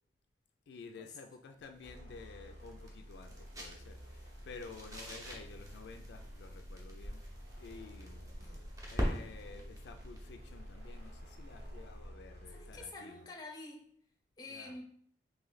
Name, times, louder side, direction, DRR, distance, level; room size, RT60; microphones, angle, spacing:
voice 1, 0.7-7.2 7.6-8.3 8.9-13.2 14.5-14.8, left 4 dB, 75° left, 6 dB, 0.3 m, -52 dB
sound 1, 1.6-12.2, equal, 20° right, 0.7 m, -44 dB
sound 2, 1.8-12.9, equal, 65° right, 0.9 m, -51 dB
voice 2, 8.4-8.7 12.5-13.9 14.4-14.8, left 2 dB, 20° left, 2 dB, 0.6 m, -48 dB
3.1 x 2.7 x 3.8 m, 0.65 s
head